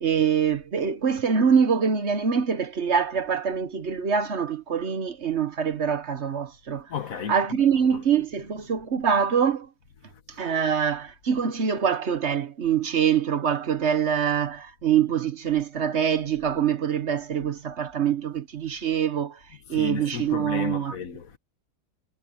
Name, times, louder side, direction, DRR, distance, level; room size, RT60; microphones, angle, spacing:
voice 1, 0.0-6.9 7.3-9.7 10.4-19.4 19.7-20.9, right 7 dB, 55° right, 1.3 m, -24 dB
voice 2, 6.9-8.0 19.7-21.4, left 7 dB, 75° left, 1.6 m, -34 dB
omnidirectional pair, 1.5 m